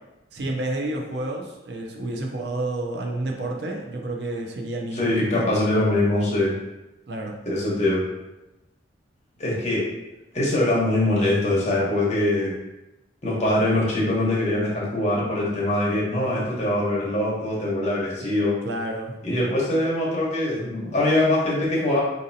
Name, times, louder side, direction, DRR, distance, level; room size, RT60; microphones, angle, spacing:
voice 1, 0.3-5.5 7.1-7.3 18.4-19.1, right 2 dB, 60° right, 1 dB, 0.5 m, -30 dB
voice 2, 4.9-6.5 7.5-8.0 9.4-9.9 10.3-12.5 13.2-18.6 19.2-22.0, left 1 dB, 35° left, -5 dB, 1.0 m, -23 dB
4.0 x 2.6 x 2.7 m, 0.98 s
head